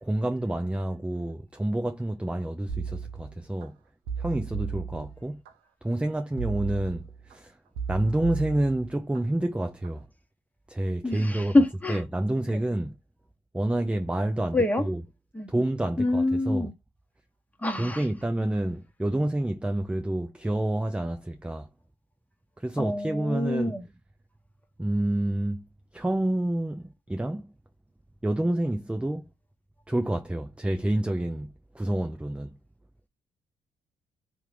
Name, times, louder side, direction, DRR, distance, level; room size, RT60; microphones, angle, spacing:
voice 1, 0.0-3.8 4.2-5.4 5.8-7.6 7.9-10.1 10.7-11.5 11.9-13.0 13.5-15.0 15.5-16.7 17.8-21.7 22.6-23.8 24.8-25.6 25.9-27.5 28.2-29.3 29.9-32.5, right 1 dB, 5° right, 0.5 m, -28 dB
sound 1, 2.7-3.7 4.1-5.5 6.4-7.3 7.7-9.2 9.6-10.0, right 6 dB, 85° right, 0.6 m, -35 dB
voice 2, 11.0-12.0 12.5-12.6 14.5-14.8 15.3-15.5 16.0-16.7 17.6-18.0 22.8-23.8, left 2 dB, 10° left, 1.3 m, -25 dB
2.9 x 2.5 x 3.4 m
supercardioid pair, 55°, 17 cm